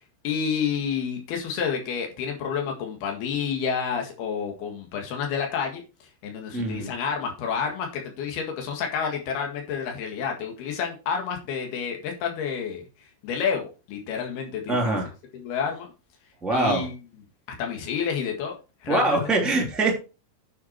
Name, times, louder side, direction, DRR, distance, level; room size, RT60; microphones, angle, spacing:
voice 1, 0.2-5.8 6.2-12.8 13.2-15.0 15.3-15.9 16.5-17.0 17.6-18.6 18.8-19.2, left 6 dB, 90° left, 2 dB, 3.9 m, -29 dB
voice 2, 6.5-6.9 14.7-15.1 16.4-16.8 18.9-19.9, right 2 dB, ahead, 1 dB, 2.3 m, -23 dB
9.7 x 7.0 x 4.6 m, 0.32 s
omnidirectional pair, 4.4 m